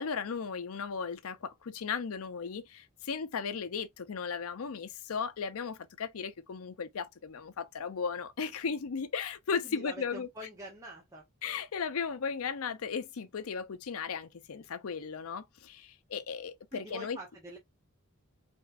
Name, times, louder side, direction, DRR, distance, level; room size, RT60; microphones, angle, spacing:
voice 1, 0.0-10.3 11.4-17.2, left 5 dB, 80° left, 0.5 m, -36 dB
voice 2, 9.6-11.3 16.7-17.6, equal, 15° right, 0.9 m, -45 dB
5.3 x 3.1 x 2.4 m
head